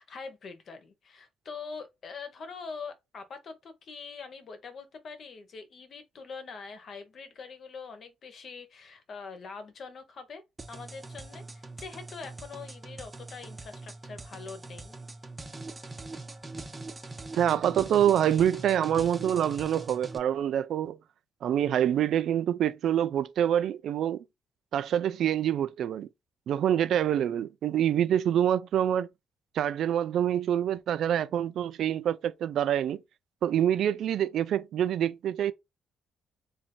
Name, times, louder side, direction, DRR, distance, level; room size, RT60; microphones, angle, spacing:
voice 1, 0.0-10.4 10.7-11.4 11.8-15.0, left 5 dB, 55° left, 1.1 m, -43 dB
sound 1, 10.6-20.2, right 2 dB, 20° right, 0.7 m, -42 dB
voice 2, 17.4-21.0 21.4-24.2 24.7-26.1 26.5-29.1 29.5-33.0 33.4-35.5, right 10 dB, 70° right, 0.3 m, -26 dB
3.0 x 2.7 x 4.2 m
cardioid pair, 90°, 0 cm